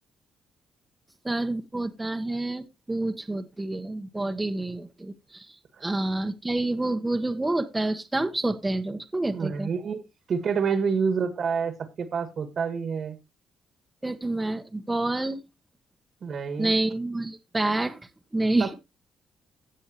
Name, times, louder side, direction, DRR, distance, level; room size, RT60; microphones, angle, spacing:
voice 1, 1.2-5.5 5.8-9.7 14.0-15.4 16.6-18.0 18.3-18.7, right 2 dB, 15° right, 1.1 m, -28 dB
voice 2, 9.3-10.0 10.3-13.2 16.2-16.7 18.6-18.7, right 6 dB, 55° right, 1.9 m, -28 dB
17.0 x 6.4 x 2.9 m
cardioid pair, 90°, 0 cm